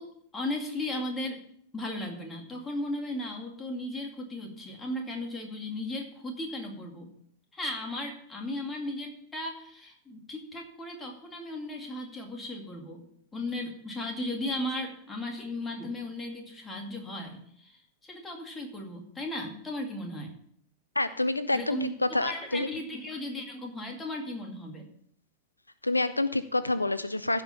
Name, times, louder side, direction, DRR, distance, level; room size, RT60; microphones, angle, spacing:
voice 1, 0.0-1.4 1.7-7.1 7.5-13.1 13.3-20.3 21.5-24.9, left 1 dB, 15° left, 2 dB, 2.3 m, -36 dB
voice 2, 21.0-22.7 25.8-27.4, left 2 dB, 85° left, 14 dB, 0.4 m, -28 dB
15.5 x 5.2 x 5.6 m, 0.65 s
figure-of-eight pair, 90°, 0 cm